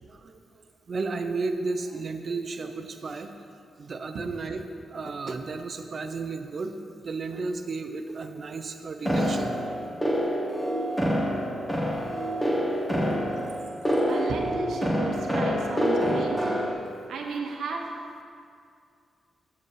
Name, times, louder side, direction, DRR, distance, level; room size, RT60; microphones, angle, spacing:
voice 1, 0.1-0.4 0.9-3.3 3.8-4.6 4.9-6.8 7.0-9.6 10.5-11.0 13.8-14.0, right 3 dB, 50° right, 7 dB, 0.7 m, -33 dB
sound 1, 9.1-16.7, equal, 15° left, 1.8 m, -26 dB
voice 2, 14.0-17.9, right 4 dB, 75° right, 1 dB, 1.0 m, -34 dB
7.5 x 7.0 x 4.9 m, 2.3 s
cardioid pair, 80°, 0 cm